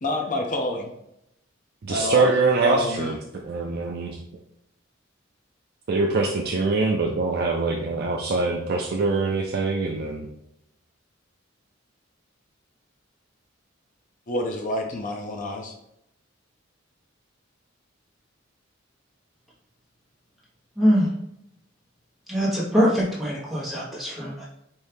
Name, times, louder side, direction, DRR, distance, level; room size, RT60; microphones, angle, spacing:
voice 1, 0.0-0.9 1.9-2.3 2.6-3.1 14.3-15.7, left 1 dB, 40° left, 1 dB, 0.6 m, -28 dB
voice 2, 1.8-3.2 3.4-4.2 5.9-10.3, right 3 dB, 50° right, 0 dB, 0.4 m, -23 dB
voice 3, 20.7-21.1 22.3-24.5, equal, ahead, -8 dB, 1.2 m, -23 dB
4.4 x 2.7 x 3.4 m, 0.80 s
head